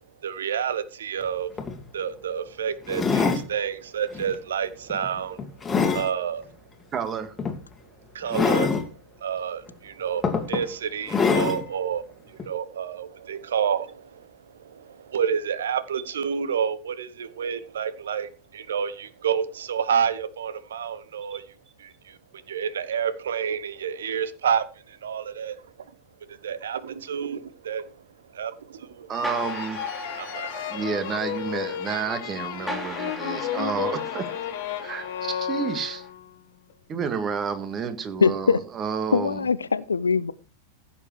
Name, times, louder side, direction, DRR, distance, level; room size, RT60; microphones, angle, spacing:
voice 1, 0.2-1.5 1.9-5.4 5.9-6.5 8.1-8.9 9.2-21.4 21.8-25.6 26.3-28.0 28.3-29.1 30.2-30.7, right 8 dB, 65° right, 1.2 m, -29 dB
sound 1, 1.2-1.3 1.6-1.8 2.9-3.5 4.1-4.4 4.9-6.1 7.4-7.6 8.3-8.8 9.7-9.8 10.2-10.7 11.1-11.6 12.4-12.5, left 5 dB, 15° left, 2.2 m, -24 dB
voice 2, 6.9-7.3 21.3-21.4 29.1-29.8 30.6-34.3 34.8-36.1 36.9-39.5, right 6 dB, 25° right, 1.9 m, -30 dB
sound 2, 29.1-36.3, left 10 dB, 50° left, 1.4 m, -33 dB
sound 3, 29.2-36.1, equal, ahead, 3.7 m, -39 dB
voice 3, 38.2-38.6 39.1-40.3, left 5 dB, 75° left, 0.7 m, -22 dB
15.5 x 7.3 x 4.8 m
figure-of-eight pair, 90°, 0 cm